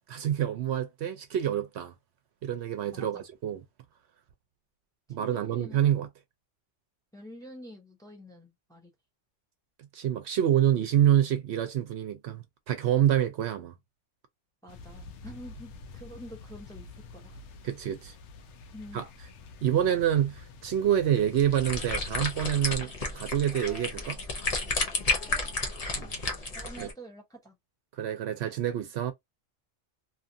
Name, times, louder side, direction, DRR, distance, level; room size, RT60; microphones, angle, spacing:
voice 1, 0.1-1.9 2.4-3.6 5.1-6.1 9.9-13.7 17.6-18.1 18.9-19.1 19.6-24.2 25.9-26.1 26.8-26.9 28.0-29.1, right 10 dB, 70° right, 0.8 m, -27 dB
voice 2, 2.9-3.3 5.2-5.8 7.1-8.9 14.6-17.4 18.7-19.0 25.3-25.5 25.9-26.1 26.5-27.6, equal, 5° left, 0.7 m, -47 dB
sound 1, 14.7-22.8, left 3 dB, 75° left, 0.9 m, -48 dB
sound 2, 21.2-26.9, left 3 dB, 40° left, 0.7 m, -32 dB
2.8 x 2.4 x 2.6 m
omnidirectional pair, 1.2 m